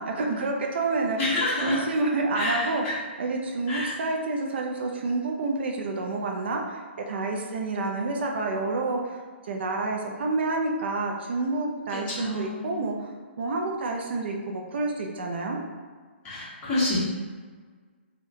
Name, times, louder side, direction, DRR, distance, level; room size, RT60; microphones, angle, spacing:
voice 1, 0.0-1.2 1.6-2.8 3.2-15.6, right 3 dB, 60° right, 1 dB, 0.5 m, -29 dB
voice 2, 1.2-1.8 2.3-2.9 3.7-3.9 11.9-12.8 16.2-17.0, left 2 dB, 20° left, -10 dB, 1.3 m, -28 dB
3.6 x 2.3 x 2.6 m, 1.5 s
hypercardioid pair, 150°, 7 cm